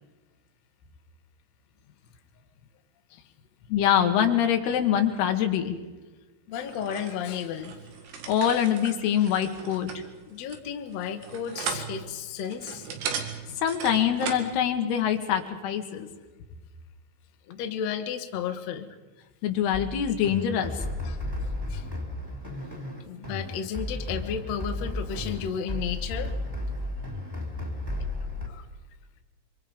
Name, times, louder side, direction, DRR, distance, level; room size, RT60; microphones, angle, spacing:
voice 1, 3.7-5.8 8.3-9.9 13.6-16.1 19.4-20.8, left 9 dB, 90° left, 5 dB, 3.6 m, -24 dB
voice 2, 6.5-7.7 9.2-9.3 10.3-12.9 17.5-18.9 21.0-21.2 21.7-21.8 23.0-26.3 28.5-28.6, left 8 dB, 60° left, 6 dB, 2.0 m, -33 dB
sound 1, 6.6-14.5, right 6 dB, 90° right, 4.1 m, -37 dB
sound 2, 19.7-28.5, left 1 dB, 5° right, 2.4 m, -33 dB
25.0 x 25.0 x 5.3 m, 1.3 s
omnidirectional pair, 4.5 m